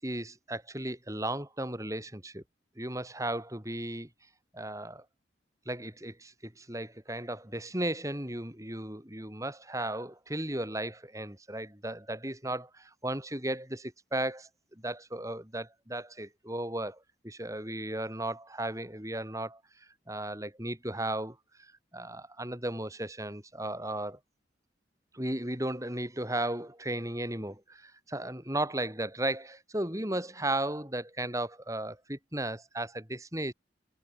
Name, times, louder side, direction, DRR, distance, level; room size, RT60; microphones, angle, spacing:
voice 1, 0.0-2.4 2.8-4.1 4.5-5.0 5.7-14.5 14.8-17.0 17.2-19.6 20.1-21.4 21.9-24.2 25.1-33.5, right 1 dB, 15° right, 4.8 m, -35 dB
head